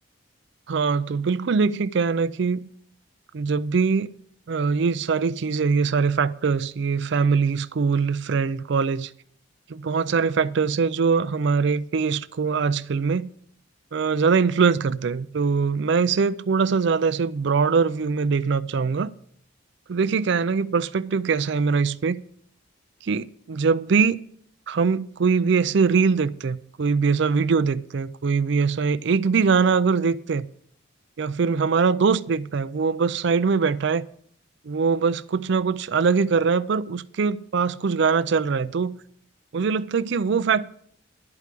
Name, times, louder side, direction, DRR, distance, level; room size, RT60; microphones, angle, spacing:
voice 1, 0.7-2.6 3.3-4.1 4.5-9.1 9.7-13.3 13.9-19.1 19.9-22.2 23.0-24.2 24.7-30.5 31.2-34.0 34.6-39.0 39.5-40.7, right 5 dB, 60° right, 0.4 m, -22 dB
12.0 x 4.8 x 8.3 m
head